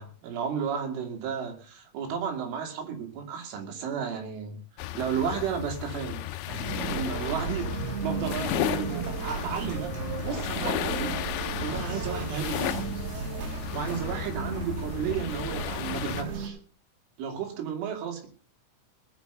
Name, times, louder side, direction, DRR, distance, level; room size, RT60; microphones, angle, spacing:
voice 1, 0.0-4.6 4.9-6.2 6.7-7.7 8.0-9.9 10.2-11.2 11.6-12.8 13.7-16.6 17.2-18.3, right 7 dB, 70° right, 3 dB, 4.8 m, -33 dB
sound 1, 4.8-16.2, left 15 dB, 80° left, 2.6 m, -34 dB
sound 2, 6.5-16.5, right 4 dB, 55° right, 4.2 m, -34 dB
19.0 x 7.0 x 6.7 m, 0.43 s
omnidirectional pair, 5.9 m